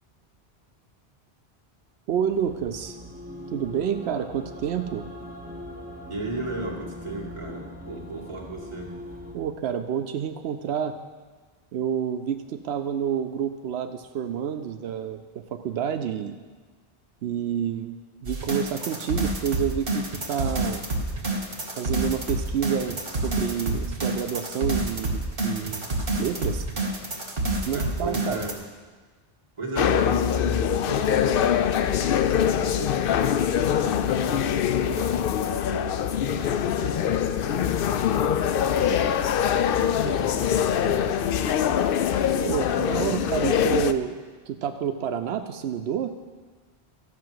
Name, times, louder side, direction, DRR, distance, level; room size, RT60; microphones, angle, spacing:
sound 1, 2.1-9.3, left 1 dB, 10° right, 1.2 m, -40 dB
voice 1, 2.1-3.0 3.5-5.1 9.3-11.0 11.7-16.3 17.2-17.9 18.2-20.8 21.8-25.9 26.2-26.6 27.7-28.4 42.5-44.2 44.5-46.2, right 8 dB, 85° right, 8 dB, 0.8 m, -29 dB
voice 2, 6.1-8.9 27.7-28.6 29.6-33.1 33.6-39.1 39.5-41.6, right 2 dB, 30° right, -3 dB, 2.0 m, -36 dB
sound 2, 18.2-28.5, right 2 dB, 60° right, 1.7 m, -28 dB
sound 3, 29.8-43.9, left 9 dB, 65° left, 0.7 m, -23 dB
13.5 x 5.9 x 7.6 m, 1.4 s
omnidirectional pair, 1.1 m